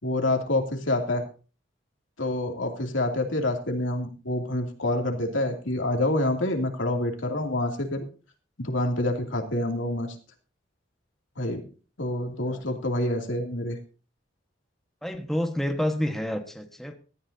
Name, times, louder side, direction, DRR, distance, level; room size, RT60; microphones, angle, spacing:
voice 1, 0.0-1.2 2.2-8.0 8.6-10.1 11.4-11.6 12.0-13.8, left 1 dB, 85° left, 3 dB, 2.7 m, -27 dB
voice 2, 15.0-17.0, equal, ahead, 5 dB, 1.4 m, -29 dB
17.0 x 14.0 x 2.8 m, 0.36 s
head